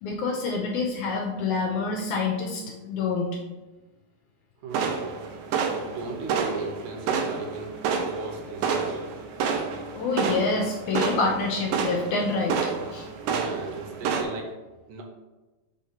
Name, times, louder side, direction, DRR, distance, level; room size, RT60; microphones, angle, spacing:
voice 1, 0.0-3.3 10.0-12.6 12.9-13.1, left 4 dB, 75° left, 0 dB, 1.9 m, -27 dB
voice 2, 4.6-5.1 5.6-9.0 13.2-14.6 14.9-15.0, right 3 dB, 75° right, 2 dB, 2.2 m, -37 dB
sound 1, 4.7-14.2, right 5 dB, 90° right, 2.4 m, -29 dB
5.5 x 3.3 x 5.6 m, 1.1 s
omnidirectional pair, 3.9 m